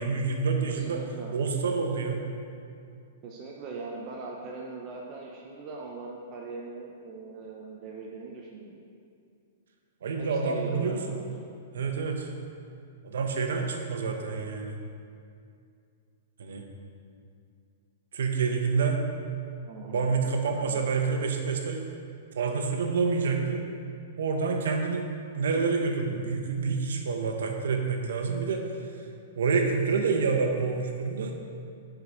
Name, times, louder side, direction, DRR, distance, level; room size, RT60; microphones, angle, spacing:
voice 1, 0.0-1.0 1.3-2.2 10.0-11.2 11.7-12.3 13.0-14.8 16.4-16.7 18.1-19.0 19.8-21.9 22.4-23.7 24.2-25.1 25.3-28.6 29.3-31.3, right 5 dB, 80° right, 3 dB, 1.1 m, -28 dB
voice 2, 0.6-1.3 3.2-8.7 10.2-11.4 19.7-20.1 20.5-20.8, right 3 dB, 35° right, -1 dB, 0.9 m, -40 dB
8.0 x 5.1 x 6.2 m, 2.4 s
hypercardioid pair, 145°, 0 cm